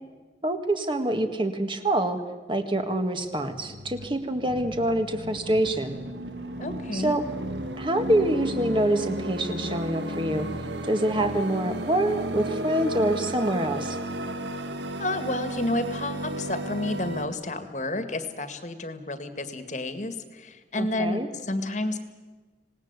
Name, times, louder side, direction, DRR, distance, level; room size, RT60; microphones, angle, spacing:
voice 1, 0.4-2.2 2.5-6.0 6.9-7.2 7.8-10.5 10.9-14.0 20.8-21.3, right 1 dB, 30° right, 7 dB, 1.8 m, -26 dB
sound 1, 3.2-17.2, right 1 dB, 85° right, 1.8 m, -34 dB
voice 2, 6.6-7.2 15.0-22.0, left 2 dB, 40° left, 10 dB, 1.9 m, -30 dB
26.5 x 19.0 x 8.3 m, 1.3 s
head